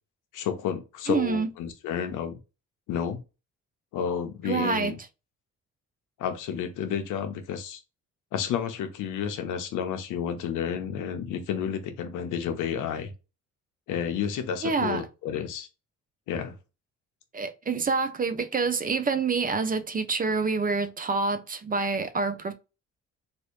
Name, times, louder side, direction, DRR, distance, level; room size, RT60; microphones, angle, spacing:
voice 1, 0.3-2.4 2.9-3.2 3.9-5.0 6.2-7.8 8.3-13.1 13.9-15.7 16.3-16.5, left 8 dB, 85° left, 0.8 m, -31 dB
voice 2, 1.1-1.5 4.4-4.9 14.6-15.0 17.3-22.5, right 4 dB, 30° right, 0.5 m, -27 dB
3.2 x 2.6 x 3.0 m
cardioid pair, 90°, 30 cm